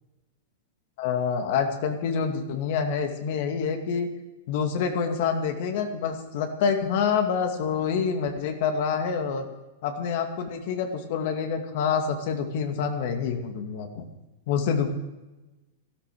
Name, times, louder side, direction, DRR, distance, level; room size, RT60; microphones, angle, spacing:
voice 1, 1.0-4.1 4.5-9.4 9.8-14.1 14.5-14.9, left 6 dB, 60° left, 5 dB, 2.3 m, -27 dB
13.5 x 13.0 x 6.4 m, 1.1 s
hypercardioid pair, 125°, 0 cm